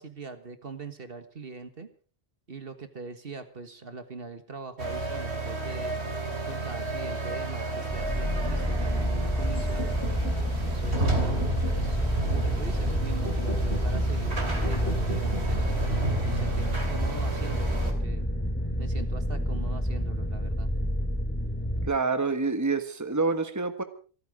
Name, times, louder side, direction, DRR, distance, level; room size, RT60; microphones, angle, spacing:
voice 1, 0.0-1.9 2.5-6.0 6.5-9.9 10.6-12.0 12.3-15.6 16.2-18.3 18.8-20.7, right 4 dB, 60° right, 9 dB, 1.8 m, -41 dB
sound 1, 4.8-17.9, right 3 dB, 85° right, 3.3 m, -32 dB
sound 2, 7.9-21.9, equal, 10° left, 2.2 m, -29 dB
sound 3, 9.5-17.5, left 1 dB, 85° left, 8.4 m, -41 dB
voice 2, 21.8-23.8, right 4 dB, 15° right, 9 dB, 1.3 m, -27 dB
27.0 x 9.4 x 4.9 m, 0.39 s
omnidirectional pair, 1.1 m